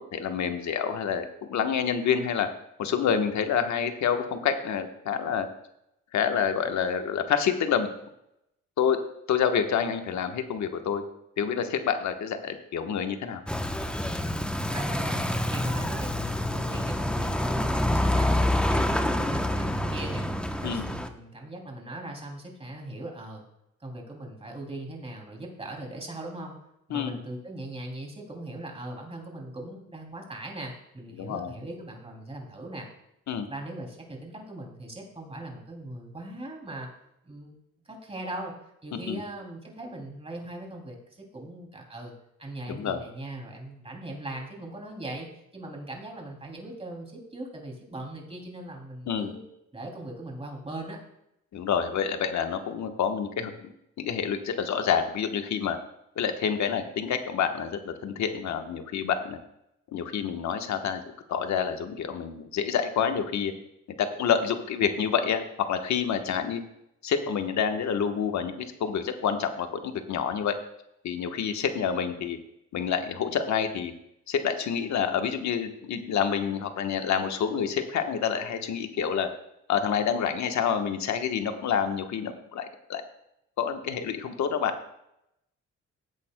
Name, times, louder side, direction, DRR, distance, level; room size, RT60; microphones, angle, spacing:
voice 1, 0.0-2.5 2.8-5.5 6.1-7.9 8.8-9.0 9.3-11.0 11.4-13.4 20.6-20.8 26.9-27.2 31.1-31.5 33.3-33.5 38.9-39.2 42.7-43.0 49.1-49.3 51.5-53.7 54.0-55.8 56.2-59.4 59.9-61.0 61.3-63.5 64.0-65.4 65.7-66.6 67.0-70.5 71.0-72.4 72.7-73.9 74.3-79.3 79.7-83.0 83.6-84.7, left 7 dB, 65° left, 7 dB, 1.2 m, -28 dB
sound 1, 13.5-21.1, left 1 dB, 5° left, 0.8 m, -27 dB
voice 2, 14.6-15.2 15.5-20.3 20.6-23.4 23.8-26.6 26.9-32.9 33.5-36.9 37.2-37.6 37.9-38.5 38.8-42.1 42.4-45.3 45.5-49.4 49.7-51.0, right 1 dB, 20° right, 1 dB, 2.8 m, -40 dB
16.5 x 8.4 x 2.2 m, 0.82 s
cardioid pair, 90°, 30 cm